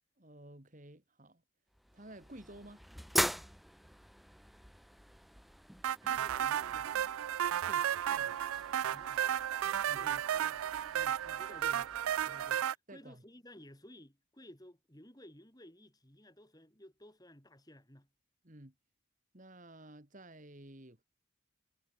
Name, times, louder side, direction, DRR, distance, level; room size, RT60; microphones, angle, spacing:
voice 1, 0.2-1.4 1.9-2.8 7.7-8.4 9.9-10.1 12.9-13.2 18.4-18.7 19.3-21.0, right 1 dB, 40° right, 2.4 m, -53 dB
sound 1, 1.7-12.5, equal, ahead, 0.7 m, -42 dB
sound 2, 5.8-12.7, right 10 dB, 90° right, 0.4 m, -33 dB
voice 2, 6.0-7.3 8.9-9.2 9.8-11.9 12.2-18.1, left 1 dB, 20° left, 4.0 m, -56 dB
head